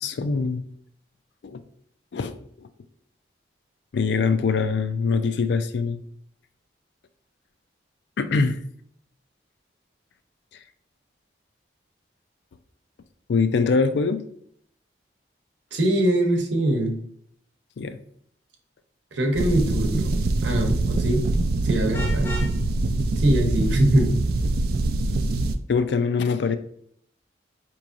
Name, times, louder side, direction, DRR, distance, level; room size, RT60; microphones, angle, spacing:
voice 1, 0.0-0.6 1.4-1.6 2.1-2.4 3.9-6.0 8.2-8.6 13.3-14.2 17.8-18.0 25.7-26.6, left 4 dB, 70° left, 11 dB, 0.4 m, -23 dB
voice 2, 15.7-17.0 19.1-20.1 20.4-21.3 21.6-22.3 23.2-24.1, right 1 dB, 80° right, 2 dB, 0.8 m, -22 dB
sound 1, 19.3-25.5, right 2 dB, 50° right, 0.3 m, -24 dB
Vehicle horn car horn honking, 21.9-22.6, left 1 dB, 10° left, 0.5 m, -33 dB
4.6 x 3.0 x 2.5 m, 0.66 s
head